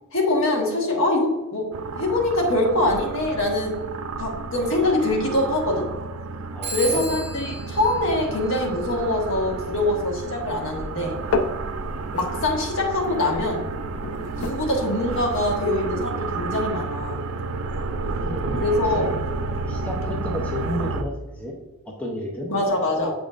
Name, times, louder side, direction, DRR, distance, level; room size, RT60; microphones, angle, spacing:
voice 1, 0.1-1.7 1.9-3.7 4.2-5.9 6.7-11.1 12.1-13.6 14.3-17.2 18.6-19.1 22.5-23.1, left 1 dB, 60° left, 0 dB, 1.5 m, -24 dB
sound 1, 1.7-21.0, right 3 dB, 70° right, 0.4 m, -31 dB
voice 2, 6.5-7.0 18.0-19.1 19.7-21.5 21.9-22.5, equal, 5° left, -2 dB, 0.7 m, -32 dB
Telephone, 6.6-9.1, right 3 dB, 50° right, 1.0 m, -34 dB
sound 2, 11.1-16.5, left 3 dB, 80° left, 0.6 m, -33 dB
7.6 x 5.2 x 2.5 m, 1.2 s
head